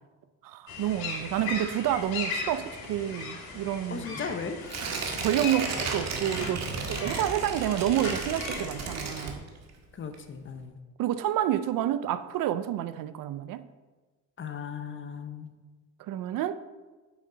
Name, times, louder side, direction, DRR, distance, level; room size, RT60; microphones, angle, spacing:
voice 1, 0.4-4.2 5.2-9.4 11.0-13.6 16.0-16.6, right 11 dB, 65° right, 0.6 m, -29 dB
sound 1, 0.7-9.3, left 4 dB, 75° left, 3.2 m, -38 dB
voice 2, 3.9-4.6 9.9-10.8 14.4-15.5, left 6 dB, 35° left, 1.0 m, -37 dB
Tearing, 4.7-9.8 10.1-10.2, right 4 dB, 45° right, 1.7 m, -34 dB
9.8 x 8.2 x 3.9 m
cardioid pair, 105°, 36 cm